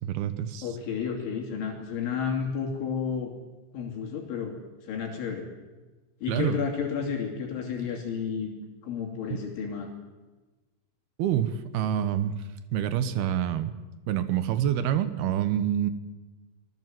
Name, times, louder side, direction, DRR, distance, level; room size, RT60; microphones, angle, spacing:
voice 1, 0.0-0.7 6.3-6.6 9.3-9.4 11.2-12.3 12.7-13.7 14.1-15.9, right 10 dB, 70° right, 12 dB, 2.5 m, -27 dB
voice 2, 0.6-3.3 3.7-4.5 4.8-5.5 6.2-8.5 8.8-9.9, left 6 dB, 70° left, 1 dB, 5.1 m, -31 dB
26.5 x 19.0 x 7.7 m, 1.2 s
omnidirectional pair, 5.8 m